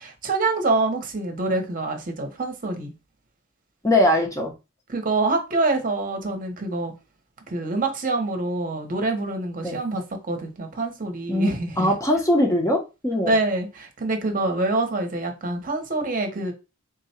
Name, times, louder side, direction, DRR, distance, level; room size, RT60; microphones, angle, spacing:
voice 1, 0.0-2.9 4.9-6.9 7.5-11.9 13.3-16.5, right 2 dB, 40° right, 0.8 m, -26 dB
voice 2, 3.8-4.5 9.6-9.8 11.3-11.5 11.8-13.3, left 1 dB, 15° left, 0.7 m, -21 dB
3.7 x 2.2 x 4.2 m
head